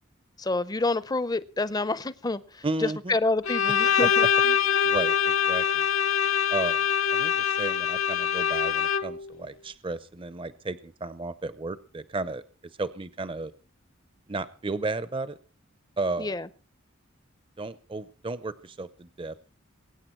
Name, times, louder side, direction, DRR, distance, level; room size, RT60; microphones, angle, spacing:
voice 1, 0.4-4.2 16.2-16.5, left 3 dB, 20° left, 0.6 m, -28 dB
voice 2, 2.6-3.1 4.0-4.1 4.8-5.9 6.5-6.8 7.1-12.4 12.8-13.5 14.3-15.4 16.0-16.4 17.6-19.4, right 2 dB, 25° right, 0.6 m, -33 dB
Bowed string instrument, 3.4-9.3, left 8 dB, 75° left, 1.0 m, -24 dB
22.5 x 9.6 x 4.4 m
head